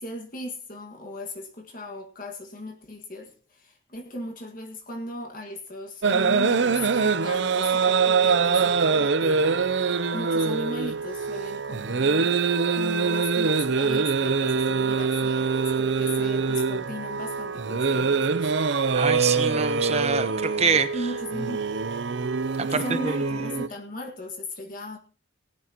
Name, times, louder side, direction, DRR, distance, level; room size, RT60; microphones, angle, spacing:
voice 1, 0.0-12.4 12.7-18.5 20.9-21.7 22.6-25.0, left 1 dB, 45° left, 2 dB, 1.8 m, -37 dB
sound 1, 6.0-23.7, right 5 dB, 60° right, 0.5 m, -24 dB
voice 2, 18.9-20.9 22.7-23.4, right 5 dB, 30° right, 11 dB, 1.0 m, -25 dB
18.5 x 12.0 x 3.0 m, 0.34 s
head